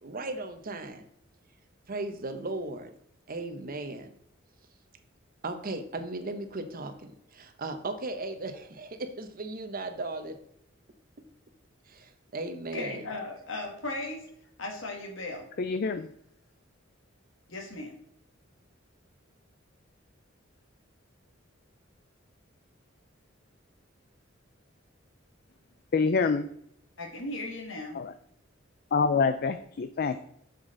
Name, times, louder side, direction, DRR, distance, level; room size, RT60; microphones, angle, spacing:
voice 1, 0.0-1.1 1.9-2.9 3.3-4.1 5.4-10.4 11.9-13.0, right 2 dB, 50° right, 8 dB, 0.9 m, -36 dB
voice 2, 12.7-14.3 14.6-15.5 17.5-18.0 27.0-28.0, left 2 dB, 70° left, 1 dB, 2.0 m, -37 dB
voice 3, 15.6-16.1 25.9-26.5 27.9-28.1 28.9-30.2, left 4 dB, 50° left, 10 dB, 0.4 m, -26 dB
7.4 x 7.1 x 3.9 m, 0.70 s
head